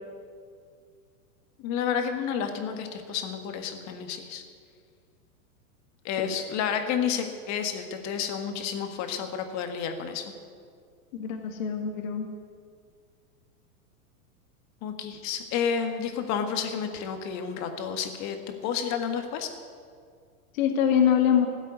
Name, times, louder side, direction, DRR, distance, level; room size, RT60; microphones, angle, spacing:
voice 1, 1.6-4.4 6.0-10.2 14.8-18.4 18.6-19.5, left 7 dB, 40° left, 6 dB, 1.8 m, -30 dB
voice 2, 11.1-12.3 20.5-21.5, left 8 dB, 65° left, 4 dB, 2.0 m, -24 dB
14.5 x 8.2 x 9.4 m, 2.1 s
hypercardioid pair, 130°, 44 cm